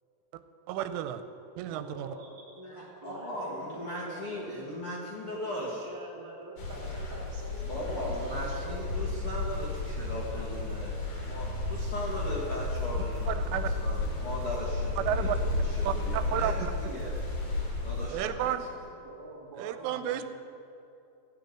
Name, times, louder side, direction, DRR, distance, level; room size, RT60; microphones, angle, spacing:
voice 1, 0.7-1.2 1.6-2.1 13.3-13.7 15.1-15.4 15.8-16.5 18.1-18.6 19.6-20.3, right 11 dB, 85° right, 10 dB, 3.1 m, -32 dB
voice 2, 1.7-2.5 3.0-4.7 5.2-9.2 19.0-20.3, right 2 dB, 30° right, -6 dB, 0.3 m, -46 dB
voice 3, 2.6-5.8 7.6-17.1 17.8-18.5, left 1 dB, 85° left, -5 dB, 1.2 m, -38 dB
sound 1, 6.6-18.1, left 2 dB, 50° left, 1.6 m, -33 dB
15.5 x 5.4 x 9.1 m, 2.7 s
omnidirectional pair, 5.7 m